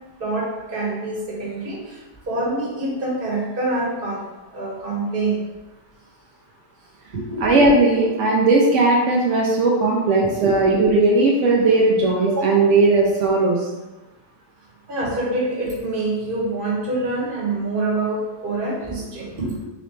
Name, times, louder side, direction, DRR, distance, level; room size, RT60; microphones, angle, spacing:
voice 1, 0.2-4.3 4.5-5.5 7.1-7.5 10.2-10.6 14.9-19.7, right 2 dB, 50° right, -5 dB, 1.3 m, -26 dB
voice 2, 7.4-13.6, right 2 dB, 80° right, -2 dB, 1.0 m, -17 dB
3.8 x 3.1 x 3.2 m, 1.1 s
omnidirectional pair, 1.2 m